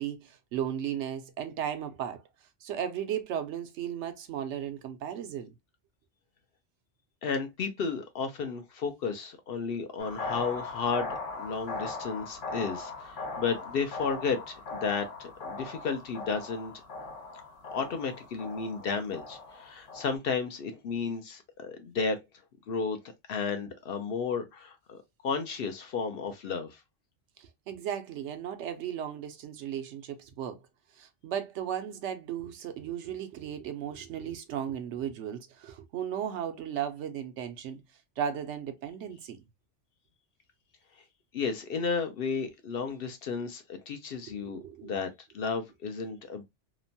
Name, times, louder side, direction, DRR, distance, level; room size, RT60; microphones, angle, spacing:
voice 1, 0.0-2.2 2.6-5.5 27.4-30.6 31.0-37.8 38.2-39.4 44.3-45.0, right 9 dB, 80° right, 0.9 m, -35 dB
voice 2, 7.2-11.1 11.4-16.7 17.7-22.2 22.7-23.0 23.3-26.8 41.3-45.1 45.3-46.4, left 5 dB, 60° left, 0.7 m, -33 dB
sound 1, 10.0-20.2, left 3 dB, 90° left, 1.2 m, -39 dB
2.9 x 2.1 x 2.5 m
omnidirectional pair, 1.2 m